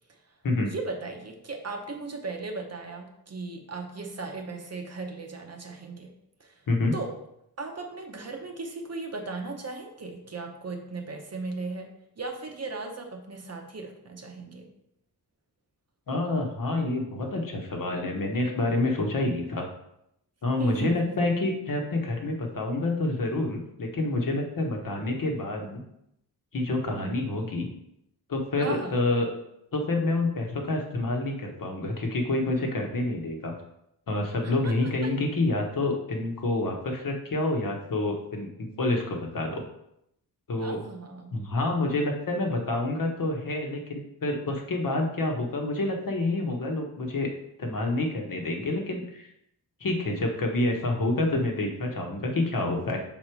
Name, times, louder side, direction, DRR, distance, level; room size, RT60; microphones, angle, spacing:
voice 1, 0.6-6.1 6.4-6.5 6.9-7.1 7.6-11.9 12.2-14.7 20.6-21.2 26.8-27.2 28.6-29.0 34.4-35.1 40.6-41.3, right 3 dB, 40° right, 3 dB, 0.8 m, -37 dB
voice 2, 16.1-19.7 20.4-25.8 26.5-27.7 28.3-29.3 29.7-33.5 34.1-38.5 38.8-39.6 40.5-40.8 41.3-47.3 47.6-49.3 49.8-53.0, left 2 dB, 60° left, 2 dB, 1.1 m, -28 dB
6.1 x 4.0 x 4.5 m, 0.79 s
wide cardioid pair, 180°, 38 cm